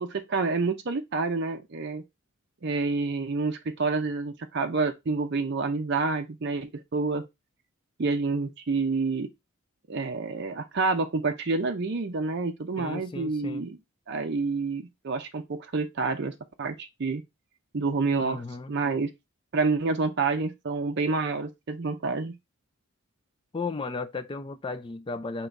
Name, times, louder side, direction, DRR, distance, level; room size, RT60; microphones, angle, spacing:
voice 1, 0.0-2.0 2.6-7.3 8.0-9.3 9.9-13.8 14.1-16.3 16.6-17.2 17.7-18.4 18.7-19.1 19.5-22.4, right 4 dB, 50° right, 0.5 m, -28 dB
voice 2, 12.8-13.7 18.2-18.7 23.5-25.5, left 3 dB, 20° left, 0.3 m, -35 dB
3.9 x 2.9 x 4.5 m
head